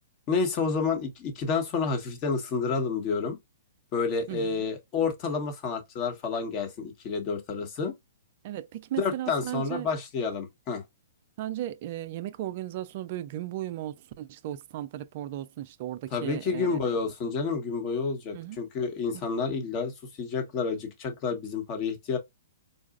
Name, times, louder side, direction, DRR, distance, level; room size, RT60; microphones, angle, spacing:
voice 1, 0.3-3.4 3.9-7.9 9.0-10.8 16.1-22.2, left 5 dB, 35° left, 1.1 m, -29 dB
voice 2, 4.3-4.7 8.4-9.9 11.4-17.0 18.3-18.6 19.1-19.2, right 13 dB, 50° right, 0.4 m, -36 dB
3.9 x 2.3 x 2.4 m
hypercardioid pair, 130°, 0 cm